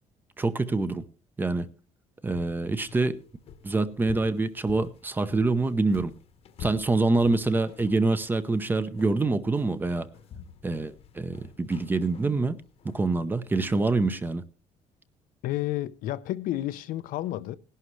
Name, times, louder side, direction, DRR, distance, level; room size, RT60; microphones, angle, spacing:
voice 1, 0.4-1.0 1.4-1.7 2.2-3.2 3.6-6.1 6.6-10.1 10.6-12.6 12.8-14.4, right 3 dB, 15° right, 0.6 m, -26 dB
sound 1, 2.3-13.6, left 7 dB, 45° left, 1.0 m, -48 dB
voice 2, 15.4-17.6, left 14 dB, 80° left, 0.6 m, -31 dB
18.0 x 11.0 x 3.2 m
cardioid pair, 170°, 14 cm